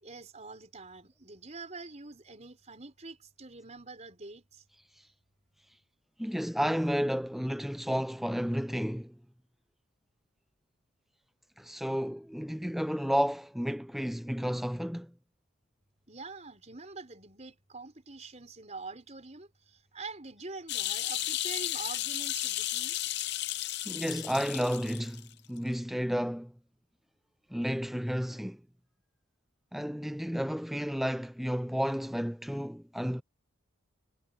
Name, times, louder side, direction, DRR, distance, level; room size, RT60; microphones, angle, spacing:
voice 1, 0.0-4.6 16.1-23.0, right 3 dB, 30° right, 5.2 m, -45 dB
voice 2, 6.2-9.2 11.6-15.1 23.9-26.5 27.5-28.6 29.7-33.2, equal, ahead, 0.4 m, -32 dB
sound 1, 20.7-25.2 25.6-25.7, left 13 dB, 50° left, 0.7 m, -33 dB
head